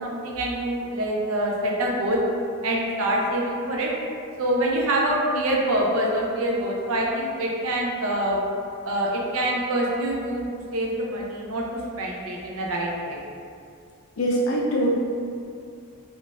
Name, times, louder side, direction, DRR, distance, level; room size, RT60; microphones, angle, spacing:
voice 1, 0.0-2.2 2.6-3.9 4.4-8.4 8.8-10.5 10.7-13.2, right 1 dB, 65° right, -2 dB, 0.5 m, -25 dB
voice 2, 14.2-14.9, right 1 dB, 65° left, -3 dB, 0.4 m, -22 dB
3.7 x 2.4 x 2.4 m, 2.4 s
head